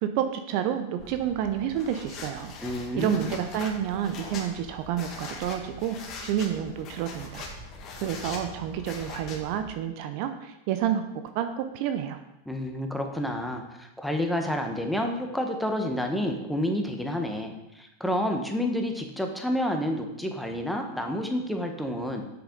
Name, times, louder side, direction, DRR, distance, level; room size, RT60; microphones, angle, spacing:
voice 1, 0.0-2.5 2.9-7.5 8.0-11.0 11.3-12.2, right 9 dB, 55° right, 8 dB, 0.6 m, -29 dB
sound 1, 1.0-9.6, left 3 dB, 40° left, 1.7 m, -41 dB
voice 2, 2.6-3.2 12.5-22.3, left 1 dB, ahead, 3 dB, 1.2 m, -29 dB
7.9 x 6.4 x 3.9 m, 0.91 s
hypercardioid pair, 95°, 0 cm